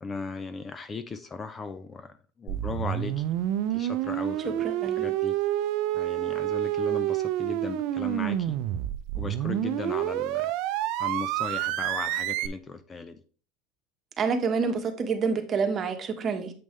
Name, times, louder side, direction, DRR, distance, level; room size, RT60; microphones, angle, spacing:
voice 1, 0.0-3.2 3.7-5.3 5.9-8.6 9.2-10.5 11.0-13.2, left 4 dB, 20° left, 11 dB, 0.5 m, -37 dB
sound 1, 2.5-12.5, right 13 dB, 65° right, 0.6 m, -28 dB
voice 2, 4.6-5.1 14.2-16.5, right 5 dB, 30° right, 5 dB, 1.3 m, -28 dB
7.7 x 5.3 x 3.2 m, 0.40 s
supercardioid pair, 125°, 0 cm